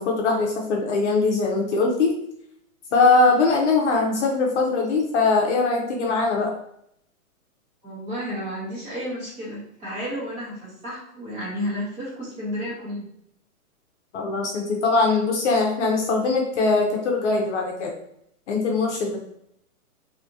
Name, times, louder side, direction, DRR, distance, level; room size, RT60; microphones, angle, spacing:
voice 1, 0.0-2.1 2.9-6.5 14.1-17.9 18.5-19.2, left 3 dB, 50° left, 0 dB, 0.8 m, -21 dB
voice 2, 7.8-13.1, equal, 15° right, -7 dB, 1.3 m, -32 dB
3.2 x 2.7 x 2.6 m, 0.72 s
hypercardioid pair, 155°, 44 cm